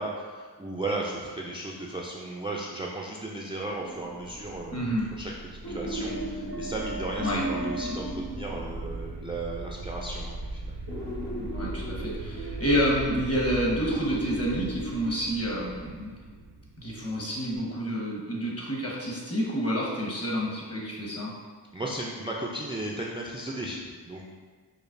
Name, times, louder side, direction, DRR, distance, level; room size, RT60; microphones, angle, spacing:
voice 1, 0.0-5.3 5.7-10.8 21.7-24.2, right 2 dB, 15° right, -3 dB, 0.4 m, -35 dB
sound 1, 3.8-4.5 5.6-9.2 10.9-13.1 13.9-15.9 17.5-17.6, right 1 dB, 80° left, 1.2 m, -36 dB
sound 2, 4.0-17.7, right 2 dB, 60° right, 0.6 m, -39 dB
voice 2, 4.7-5.1 7.2-7.4 11.4-16.1 16.8-21.3, equal, 35° left, -3 dB, 1.1 m, -29 dB
5.1 x 2.1 x 2.5 m, 1.5 s
cardioid pair, 40°, 41 cm